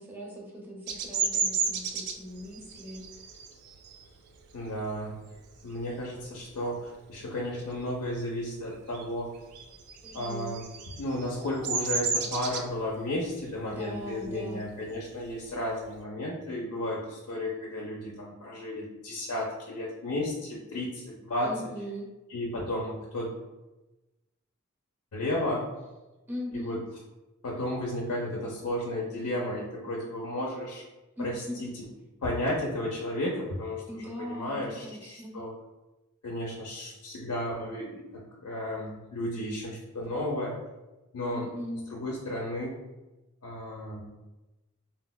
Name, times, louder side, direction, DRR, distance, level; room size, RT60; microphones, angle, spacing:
voice 1, 0.0-3.3 10.0-10.6 13.7-14.7 21.4-22.1 26.3-26.8 31.2-31.6 33.9-35.4 41.3-41.8, equal, 10° right, -4 dB, 0.6 m, -40 dB
Bird vocalization bird call bird song, 0.9-6.1 6.5-6.8 7.1-8.4 8.6-16.0, right 5 dB, 85° right, 0.4 m, -33 dB
voice 2, 4.5-5.2 5.6-9.3 10.1-10.7 11.0-21.5 22.3-23.3 25.1-25.7 26.5-26.8 27.4-30.8 31.2-31.7 32.2-35.5 36.2-40.6 41.1-41.5 41.9-42.8 43.4-44.0, left 1 dB, 85° left, -2 dB, 0.5 m, -33 dB
3.9 x 2.0 x 2.2 m, 1.1 s
head